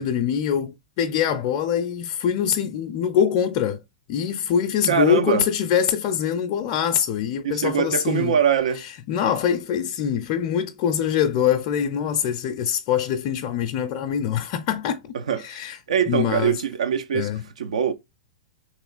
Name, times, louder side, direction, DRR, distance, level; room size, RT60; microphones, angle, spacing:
voice 1, 0.0-3.8 4.1-8.4 8.7-15.0 15.4-15.8 16.1-16.6 17.1-17.4, left 8 dB, 45° left, 0.4 m, -24 dB
voice 2, 4.9-5.4 7.4-8.8 15.3-15.6 15.9-17.3 17.6-17.9, right 7 dB, 80° right, 0.5 m, -22 dB
3.0 x 3.0 x 2.3 m
hypercardioid pair, 115°, 4 cm